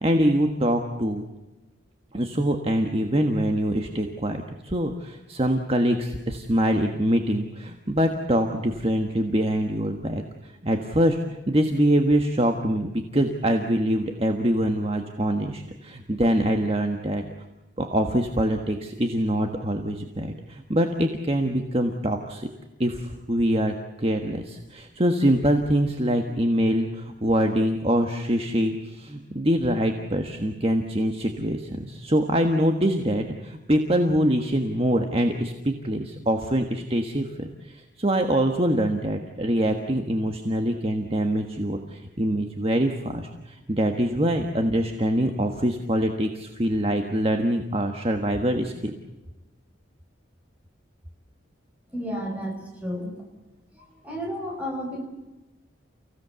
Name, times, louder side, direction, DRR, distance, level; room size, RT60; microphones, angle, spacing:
voice 1, 0.0-1.2 2.1-11.2 11.5-17.2 17.8-22.5 22.8-48.9, equal, 30° right, 4 dB, 1.4 m, -24 dB
voice 2, 51.9-52.5 52.8-53.1 54.0-55.0, equal, 5° right, 1 dB, 5.1 m, -31 dB
30.0 x 16.5 x 8.2 m, 1.0 s
head